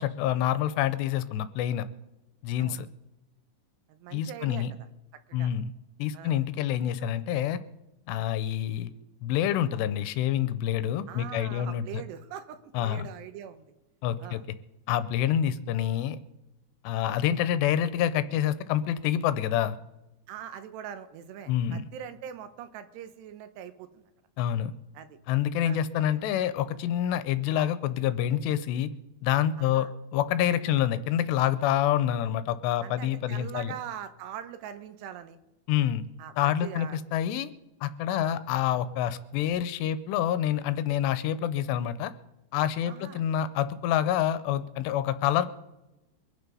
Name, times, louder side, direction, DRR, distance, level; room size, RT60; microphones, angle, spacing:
voice 1, 0.0-1.9 2.4-2.9 4.1-4.7 5.3-5.7 6.0-7.6 8.1-8.9 9.2-11.8 12.7-13.1 14.0-14.4 14.9-16.2 16.8-19.8 21.5-21.9 24.4-24.7 25.3-28.9 29.2-33.7 35.7-36.0 36.4-37.5 37.8-42.1 42.5-45.5, left 10 dB, 85° left, 13 dB, 2.8 m, -27 dB
voice 2, 3.9-4.7 5.3-5.5 6.1-6.4 11.1-13.7 14.2-14.4 20.3-24.0 24.9-25.2 25.6-25.8 29.6-29.9 32.8-35.4 36.2-37.0 38.1-38.4 42.8-43.2, right 9 dB, 80° right, 10 dB, 3.0 m, -42 dB
24.0 x 8.2 x 5.5 m, 1.0 s
omnidirectional pair, 5.0 m